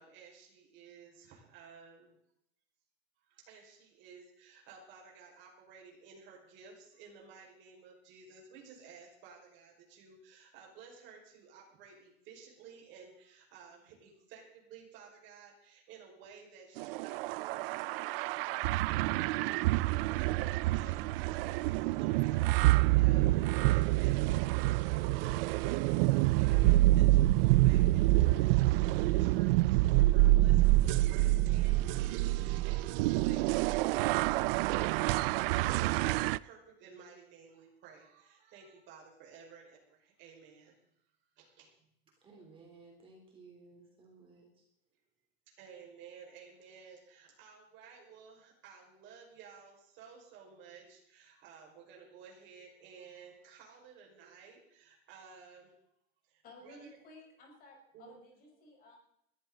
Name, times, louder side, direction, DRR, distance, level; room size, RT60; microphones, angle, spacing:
voice 1, 0.0-2.2 3.3-40.8 41.4-41.7 45.5-55.7 56.3-57.0 57.9-58.2, right 6 dB, 40° right, -1 dB, 5.3 m, -54 dB
sound 1, 16.8-36.4, right 18 dB, 70° right, 0.5 m, -27 dB
voice 2, 42.2-44.6, right 3 dB, 20° right, 0 dB, 3.6 m, -57 dB
voice 3, 56.4-59.0, left 1 dB, 30° left, 1 dB, 5.1 m, -55 dB
20.5 x 14.5 x 4.0 m, 0.76 s
cardioid pair, 180°, 30 cm